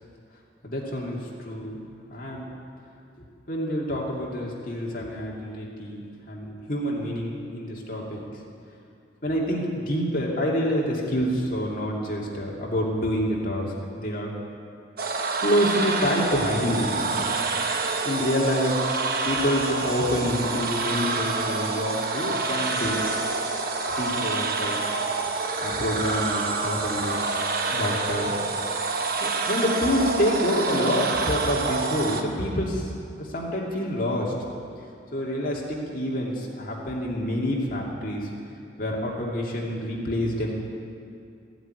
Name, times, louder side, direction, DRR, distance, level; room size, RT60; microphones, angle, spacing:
voice 1, 0.6-1.8 2.1-2.5 3.5-6.0 6.3-8.3 9.2-14.3 15.4-17.4 18.0-18.7 19.2-23.0 24.0-24.8 25.6-27.4 27.7-28.3 29.2-32.9 33.2-34.3 35.1-38.3 38.8-40.5, equal, 45° left, -3 dB, 2.5 m, -27 dB
sound 1, 15.0-32.2, right 3 dB, 50° right, 1.1 m, -27 dB
15.5 x 7.9 x 9.7 m, 2.5 s
head